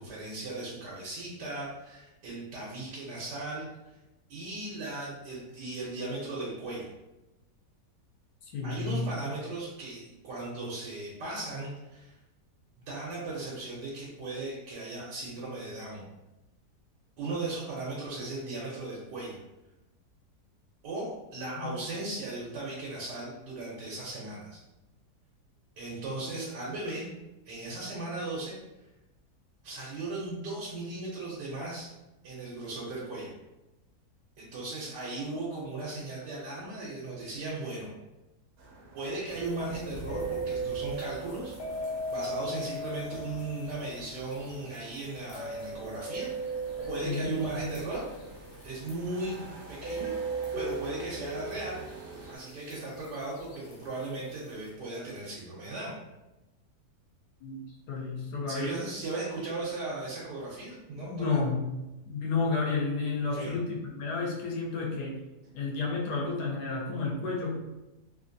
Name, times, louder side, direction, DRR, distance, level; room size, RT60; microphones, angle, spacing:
voice 1, 0.0-3.7 4.3-6.9 8.6-12.1 12.8-16.0 17.2-19.4 20.8-24.6 25.8-27.1 27.4-28.6 29.6-31.9 32.2-33.3 34.4-37.9 38.9-41.5 42.1-48.0 48.6-50.1 50.5-51.8 52.3-56.0 58.5-61.4 63.3-63.6, right 2 dB, 90° right, -6 dB, 1.4 m, -37 dB
voice 2, 8.4-9.1 21.6-21.7 47.0-47.3 57.4-57.6 57.9-58.7 61.1-61.7 62.1-65.2 65.5-67.5, left 4 dB, 75° left, -2 dB, 1.2 m, -31 dB
sound 1, 38.6-52.4, right 2 dB, 65° right, 0.9 m, -50 dB
sound 2, 39.3-54.7, right 2 dB, 50° left, 0.8 m, -38 dB
3.2 x 2.5 x 2.6 m, 1.0 s
omnidirectional pair, 1.8 m